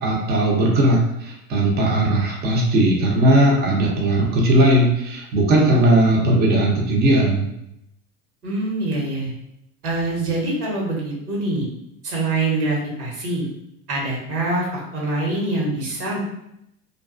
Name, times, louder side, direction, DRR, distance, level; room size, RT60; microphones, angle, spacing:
voice 1, 0.0-7.5, right 1 dB, 25° right, -2 dB, 0.6 m, -18 dB
voice 2, 8.4-9.3 9.8-11.6 12.0-13.5 13.9-16.2, right 2 dB, 80° right, -3 dB, 1.2 m, -24 dB
2.4 x 2.2 x 2.4 m, 0.80 s
hypercardioid pair, 95°, 44 cm